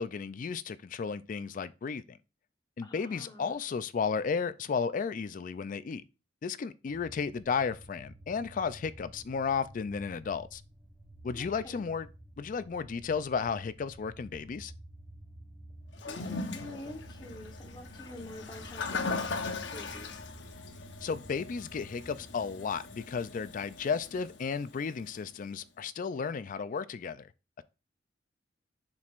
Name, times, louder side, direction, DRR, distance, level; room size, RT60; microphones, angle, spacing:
voice 1, 0.0-2.2 2.8-6.0 6.4-10.6 11.2-12.1 12.4-14.7 21.0-27.3 27.6-27.7, left 5 dB, 45° left, 0.4 m, -33 dB
voice 2, 2.8-3.5 11.3-11.8 16.1-20.2, left 1 dB, 25° left, 1.2 m, -47 dB
sound 1, 6.9-23.7, right 1 dB, 5° right, 0.9 m, -51 dB
Toilet flush, 15.9-25.2, left 4 dB, 70° left, 0.9 m, -40 dB
7.2 x 6.3 x 2.5 m
head